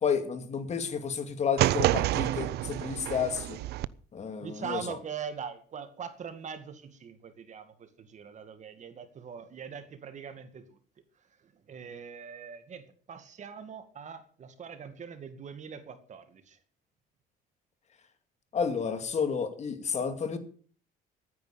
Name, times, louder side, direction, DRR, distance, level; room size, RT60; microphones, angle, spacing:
voice 1, 0.0-3.6 4.1-5.0 18.5-20.4, left 6 dB, 40° left, 9 dB, 2.3 m, -31 dB
sound 1, 1.6-3.9, right 15 dB, 75° right, 0.6 m, -28 dB
voice 2, 4.4-10.8 11.4-16.6, right 7 dB, 45° right, 10 dB, 2.1 m, -42 dB
13.5 x 9.6 x 7.0 m, 0.44 s
cardioid pair, 110°, 17 cm